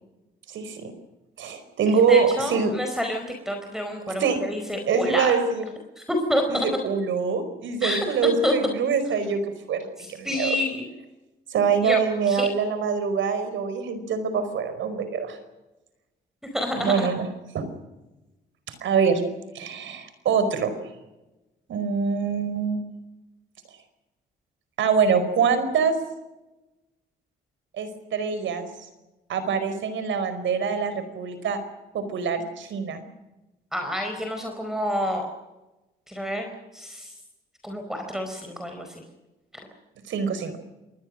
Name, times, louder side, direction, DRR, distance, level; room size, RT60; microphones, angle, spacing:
voice 1, 0.5-0.9 1.4-2.7 4.1-4.4 4.9-5.7 6.5-9.4 9.7-10.6 11.5-15.4 16.7-17.3 17.5-17.7 18.7-19.2 19.5-20.8 21.7-22.8 24.8-26.0 27.7-28.7 29.3-31.6 31.9-33.0 40.1-40.6, right 6 dB, 75° right, 11 dB, 4.8 m, -24 dB
voice 2, 2.1-5.3 6.1-6.7 7.8-8.5 10.2-10.8 11.8-12.0 12.3-12.5 16.5-17.1 33.7-35.3 36.1-36.5 36.7-37.1 37.6-38.9, equal, ahead, 4 dB, 4.6 m, -28 dB
27.5 x 20.5 x 6.5 m, 1.0 s
cardioid pair, 90°, 20 cm